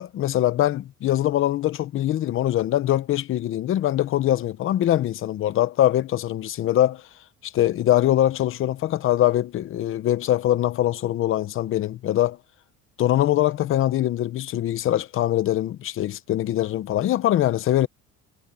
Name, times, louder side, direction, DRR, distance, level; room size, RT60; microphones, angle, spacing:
voice 1, 0.0-7.0 7.4-12.4 13.0-17.9, left 13 dB, 40° left, 0.8 m, -23 dB
cardioid pair, 165°, 32 cm